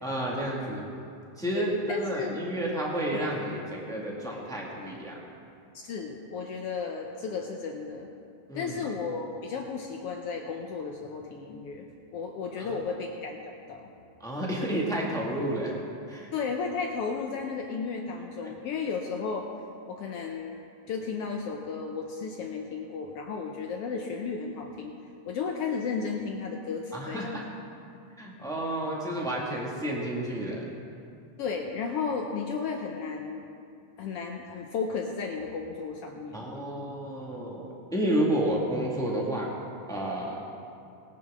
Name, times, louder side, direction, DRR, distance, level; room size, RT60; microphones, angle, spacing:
voice 1, 0.0-0.8 1.4-5.2 8.5-8.7 12.6-12.7 14.2-15.7 16.1-16.3 18.4-18.5 26.9-27.4 28.2-30.7 36.3-39.5 39.9-40.4, right 1 dB, 5° left, -3 dB, 0.7 m, -31 dB
voice 2, 1.6-2.4 3.1-3.3 5.8-8.1 8.5-11.9 12.1-13.9 16.3-19.5 19.9-20.6 20.9-24.9 25.3-27.4 31.4-33.5 34.0-36.5, left 5 dB, 85° left, 2 dB, 1.3 m, -34 dB
20.5 x 10.5 x 3.7 m, 2.6 s
omnidirectional pair, 3.7 m